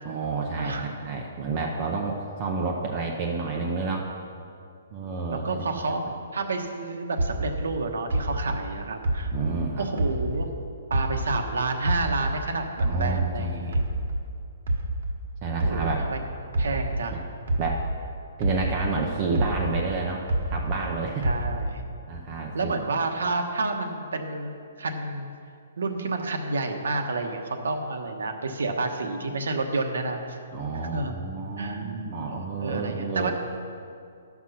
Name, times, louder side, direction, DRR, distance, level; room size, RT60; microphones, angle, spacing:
voice 1, 0.0-4.1 4.9-5.6 9.3-9.9 12.8-13.7 15.4-16.1 17.1-17.2 17.6-17.8 18.4-21.3 22.1-22.7 30.5-33.3, right 4 dB, 20° right, 0 dB, 0.6 m, -30 dB
voice 2, 0.6-0.9 5.0-9.3 9.8-10.5 10.9-13.8 15.6-16.2 16.6-17.2 21.2-21.8 22.5-24.5 24.8-25.3 25.8-30.4 30.9-31.1 31.6-33.3, right 3 dB, 85° right, 4 dB, 1.2 m, -30 dB
sound 1, 7.2-10.6 10.9-13.4 13.7-18.1 18.4-20.9 21.2-21.9, right 1 dB, 55° right, 1.1 m, -28 dB
12.5 x 6.1 x 5.8 m, 2.4 s
hypercardioid pair, 175°, 0 cm